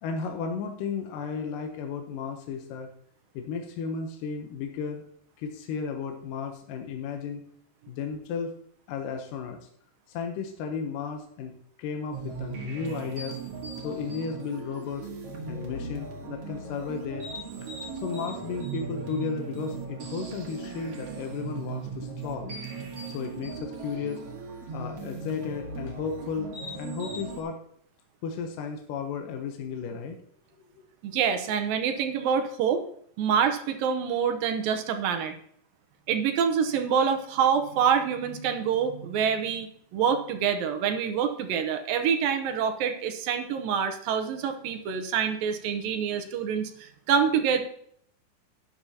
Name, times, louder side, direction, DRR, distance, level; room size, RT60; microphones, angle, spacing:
voice 1, 0.0-2.9 3.3-5.0 5.4-7.4 7.9-8.5 8.9-9.7 10.1-11.5 11.8-13.4 13.8-15.1 15.4-17.3 17.9-22.5 23.1-24.2 24.7-27.6 28.2-30.2, left 6 dB, 75° left, 4 dB, 2.4 m, -34 dB
sound 1, 12.1-27.4, right 4 dB, 50° right, 2.4 m, -38 dB
voice 2, 31.0-32.8 33.2-35.3 36.1-47.6, right 7 dB, 80° right, 6 dB, 2.6 m, -26 dB
12.0 x 9.6 x 2.8 m, 0.65 s
omnidirectional pair, 4.1 m